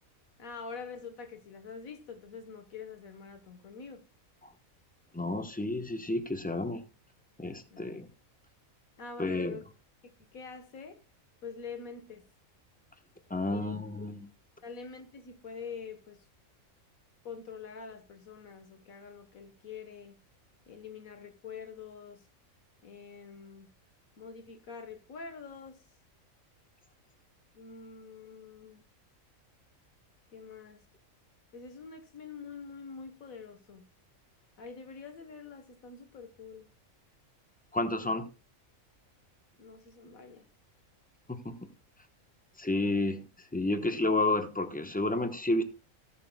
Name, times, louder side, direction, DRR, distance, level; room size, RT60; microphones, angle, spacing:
voice 1, 0.4-4.0 7.7-7.9 9.0-9.6 10.0-11.0 11.4-12.3 13.5-13.7 14.6-16.3 17.3-20.2 20.7-22.3 22.8-23.7 24.2-25.9 27.5-28.9 30.3-30.9 31.5-33.9 34.6-36.7 39.6-40.5, left 5 dB, 85° left, 1.7 m, -45 dB
voice 2, 5.1-6.8 7.4-8.1 9.2-9.6 13.3-14.3 37.7-38.3 41.3-41.7 42.6-45.6, left 2 dB, 5° left, 0.8 m, -31 dB
17.0 x 7.5 x 2.2 m
omnidirectional pair, 1.4 m